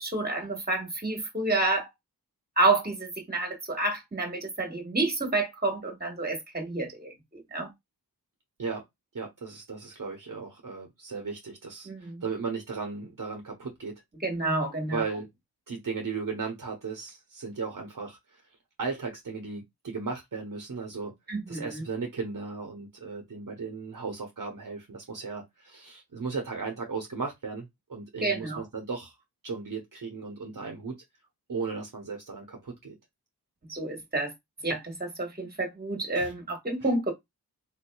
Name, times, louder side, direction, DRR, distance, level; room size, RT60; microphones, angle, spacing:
voice 1, 0.0-1.9 2.6-7.7 11.8-12.2 14.2-15.0 21.3-21.8 28.2-28.6 33.7-34.3 34.6-37.1, right 2 dB, 25° right, 1.6 m, -29 dB
voice 2, 9.1-13.9 14.9-15.3 15.7-18.4 18.8-21.1 21.5-29.1 29.4-30.9 31.5-32.9 36.1-36.3, right 4 dB, 55° right, 1.1 m, -36 dB
3.7 x 2.8 x 2.3 m
cardioid pair, 40°, 39 cm